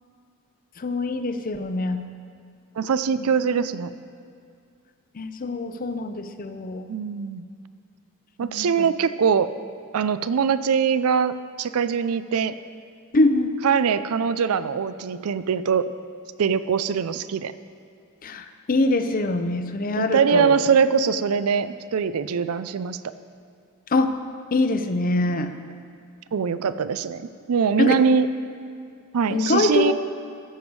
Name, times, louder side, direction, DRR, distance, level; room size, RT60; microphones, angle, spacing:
voice 1, 0.8-2.0 3.2-3.3 5.1-6.9 8.4-8.9 13.1-13.5 18.2-20.6 23.9-24.2 24.5-25.5 27.8-28.0 29.3-29.9, left 2 dB, 40° left, 9 dB, 0.6 m, -24 dB
voice 2, 2.8-3.9 6.9-7.4 8.4-9.5 9.9-12.5 13.6-15.8 16.4-17.5 20.0-23.0 26.3-27.2 27.5-28.3 29.1-29.9, right 6 dB, 70° right, 14 dB, 0.4 m, -22 dB
14.5 x 7.0 x 4.7 m, 2.4 s
head